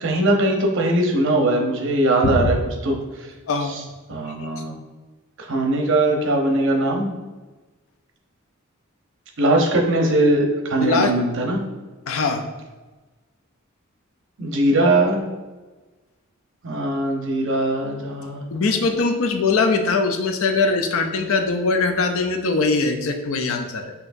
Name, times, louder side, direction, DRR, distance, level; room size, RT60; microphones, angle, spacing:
voice 1, 0.0-2.6 2.8-3.3 3.7-3.8 4.1-4.7 5.4-7.1 9.4-11.6 14.4-15.2 16.6-18.4, right 1 dB, 60° right, 1 dB, 0.7 m, -20 dB
voice 2, 3.5-3.8 4.4-4.5 10.8-11.1 12.1-12.4 18.5-23.9, left 3 dB, 65° left, 5 dB, 0.5 m, -21 dB
5.6 x 2.8 x 2.6 m, 1.2 s
head